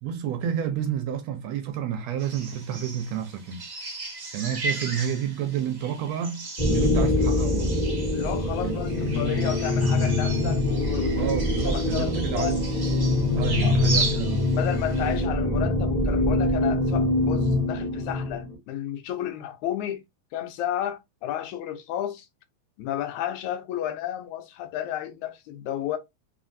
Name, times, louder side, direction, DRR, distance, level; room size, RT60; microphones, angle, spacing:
voice 1, 0.0-3.7 4.3-7.7 8.6-9.2 10.0-10.6 11.1-12.7 13.4-14.5, right 9 dB, 75° right, 1.7 m, -30 dB
sound 1, 2.2-15.2, right 3 dB, 40° right, 0.9 m, -36 dB
sound 2, 6.6-18.5, left 2 dB, 30° left, 0.6 m, -24 dB
voice 2, 8.1-12.6 13.6-13.8 14.5-20.0 20.3-22.3 22.8-26.0, left 11 dB, 80° left, 2.1 m, -32 dB
4.1 x 3.7 x 2.6 m
omnidirectional pair, 3.4 m